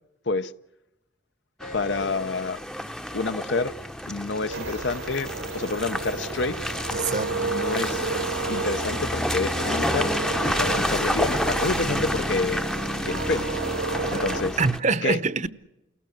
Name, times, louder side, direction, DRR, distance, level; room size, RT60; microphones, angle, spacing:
sound 1, 1.6-2.2 2.6-9.9 10.9-12.4, left 1 dB, 45° left, 1.1 m, -45 dB
Car passing by / Engine, 1.6-14.8, equal, 5° left, 0.7 m, -29 dB
voice 1, 1.7-2.6 3.1-3.7 4.0-6.6 7.3-8.0 8.5-10.1 10.4-12.7 13.1-13.5 14.1-14.6 15.0-15.2, left 3 dB, 65° left, 0.8 m, -28 dB
sound 2, 4.5-14.4, right 4 dB, 85° right, 1.7 m, -32 dB
voice 2, 6.9-7.5 14.1-14.2 14.6-15.5, right 4 dB, 40° right, 0.8 m, -25 dB
29.0 x 17.5 x 7.7 m
head